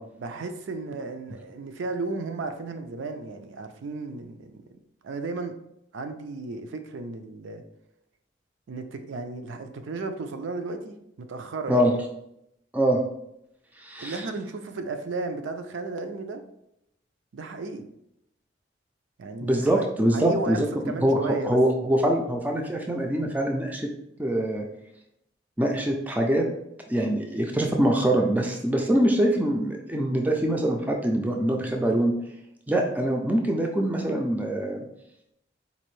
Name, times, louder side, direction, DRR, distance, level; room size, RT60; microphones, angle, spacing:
voice 1, 0.2-4.8 5.0-5.6 5.9-7.6 8.7-12.0 14.0-16.4 17.3-17.9 19.2-19.9 20.1-21.6, right 3 dB, 80° right, 7 dB, 0.4 m, -34 dB
voice 2, 13.8-14.2 19.4-20.7 21.0-23.9 24.2-24.7 25.6-26.5 26.9-32.1 32.7-34.9, right 1 dB, 10° right, 1 dB, 0.3 m, -24 dB
4.1 x 2.6 x 3.1 m, 0.79 s
head